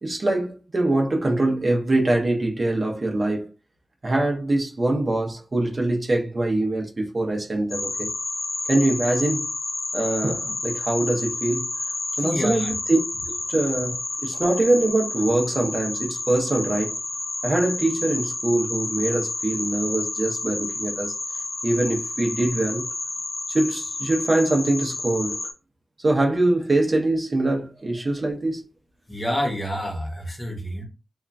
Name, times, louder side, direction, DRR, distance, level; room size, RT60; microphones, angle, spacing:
voice 1, 0.0-3.5 4.0-8.1 8.7-9.5 9.9-11.7 12.2-13.0 13.3-17.0 17.4-21.1 21.6-22.9 23.5-25.4 26.0-28.6, right 2 dB, 45° right, 0.8 m, -23 dB
sound 1, 7.7-25.5, left 2 dB, 55° left, 0.5 m, -30 dB
voice 2, 12.2-12.7 29.1-30.8, equal, 25° left, 1.1 m, -28 dB
2.9 x 2.5 x 2.3 m
cardioid pair, 60°, 0 cm